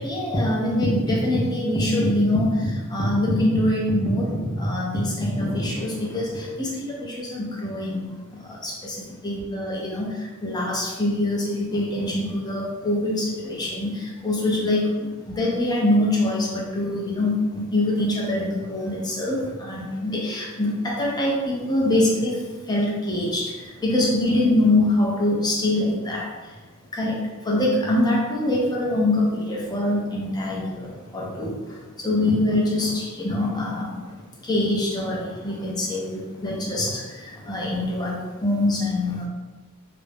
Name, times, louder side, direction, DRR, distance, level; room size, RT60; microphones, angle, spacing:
voice 1, 0.0-4.3 4.6-8.1 8.4-9.0 9.2-10.1 10.4-11.4 11.7-13.9 14.2-22.3 22.7-23.4 23.8-26.3 26.9-27.1 27.4-30.9 31.1-31.5 32.0-34.0 34.5-37.0 37.5-39.3, left 1 dB, 20° left, -4 dB, 0.6 m, -24 dB
2.4 x 2.1 x 3.3 m, 1.2 s
head